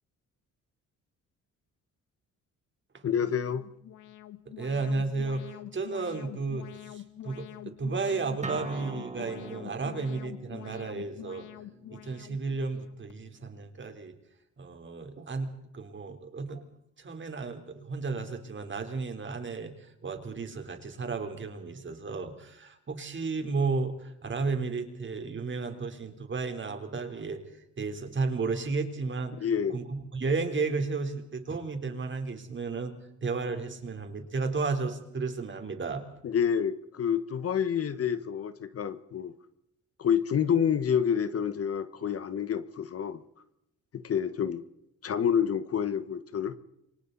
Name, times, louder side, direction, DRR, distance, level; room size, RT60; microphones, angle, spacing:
voice 1, 3.0-3.6 29.4-29.8 36.2-39.3 40.0-43.2 43.9-44.6 45.0-46.6, left 8 dB, 50° left, 13 dB, 1.4 m, -28 dB
Alarm, 3.2-13.1, left 13 dB, 80° left, 1.3 m, -46 dB
voice 2, 4.6-11.5 11.9-14.1 14.6-16.6 17.0-29.4 29.7-33.0 33.2-36.1, right 4 dB, 40° right, 5 dB, 3.9 m, -33 dB
Acoustic guitar, 8.4-13.6, right 4 dB, 25° right, 2.4 m, -44 dB
28.0 x 24.5 x 4.1 m, 0.82 s
cardioid pair, 90°, 30 cm